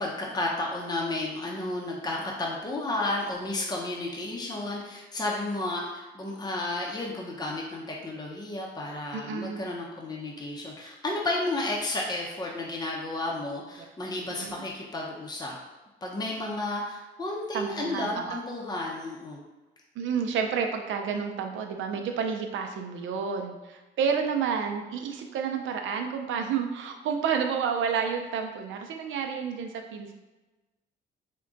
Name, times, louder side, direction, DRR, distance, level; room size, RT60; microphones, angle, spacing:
voice 1, 0.0-15.6 16.0-19.4, left 2 dB, 20° left, -2 dB, 0.7 m, -32 dB
voice 2, 9.1-9.7 14.3-14.6 17.5-18.4 20.0-30.1, right 6 dB, 75° right, 4 dB, 0.5 m, -30 dB
3.6 x 2.2 x 3.8 m, 1.1 s
cardioid pair, 90°, 20 cm